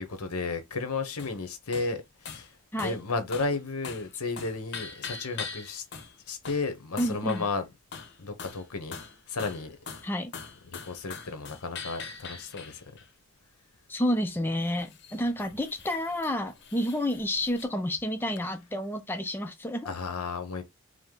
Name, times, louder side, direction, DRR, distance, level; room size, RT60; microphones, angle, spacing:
voice 1, 0.0-2.5 2.8-5.8 6.3-7.7 8.2-9.0 9.3-9.8 10.6-12.8 19.8-20.6, left 3 dB, 90° left, 1.0 m, -33 dB
sound 1, 1.2-1.4 1.7-1.9 2.3-2.5 2.8-3.0 3.3-3.6 3.8-4.1 4.4-6.2 6.5-6.7 7.0-7.6 7.9-8.7 8.9-13.1 14.6-17.7, left 5 dB, 50° left, 0.8 m, -42 dB
voice 2, 7.0-7.5 10.0-10.3 13.9-19.9, left 1 dB, 10° left, 0.4 m, -30 dB
4.9 x 2.1 x 3.8 m
head